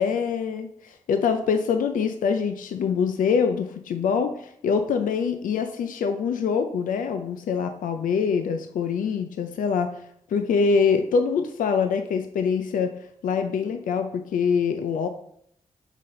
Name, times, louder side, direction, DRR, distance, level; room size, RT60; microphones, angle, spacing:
voice 1, 0.0-10.0 10.3-13.0 13.2-15.1, left 6 dB, 80° left, 7 dB, 0.5 m, -24 dB
7.1 x 4.1 x 3.8 m, 0.69 s
cardioid pair, 50°, 14 cm